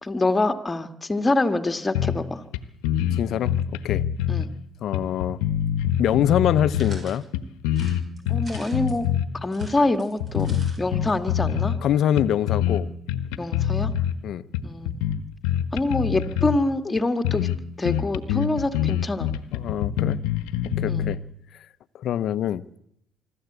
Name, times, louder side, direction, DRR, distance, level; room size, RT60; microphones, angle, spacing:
voice 1, 0.0-2.4 4.3-4.5 8.3-9.0 9.3-11.8 13.4-13.9 14.6-15.0 15.7-17.5 17.8-19.3 20.9-21.1, left 2 dB, 20° left, 8 dB, 2.1 m, -25 dB
sound 1, 1.9-2.3 2.5-2.6 2.8-4.5 4.9-7.0 7.3-9.3 9.6-9.8 10.2-11.8 12.2-12.8 13.1-14.1 14.5-16.6 17.0-17.1 17.2-17.6 17.8-21.1, left 10 dB, 80° left, 1.2 m, -25 dB
voice 2, 3.1-4.0 4.8-5.4 6.0-7.2 11.8-12.9 14.2-14.4 19.5-20.2 20.8-21.2 21.9-22.6, left 10 dB, 65° left, 15 dB, 0.9 m, -24 dB
sound 2, 6.7-7.2 7.7-9.0 9.4-10.8 11.1-11.2 11.4-11.5, right 2 dB, 35° right, 6.7 m, -45 dB
25.0 x 13.5 x 8.2 m, 0.74 s
supercardioid pair, 70°, 0 cm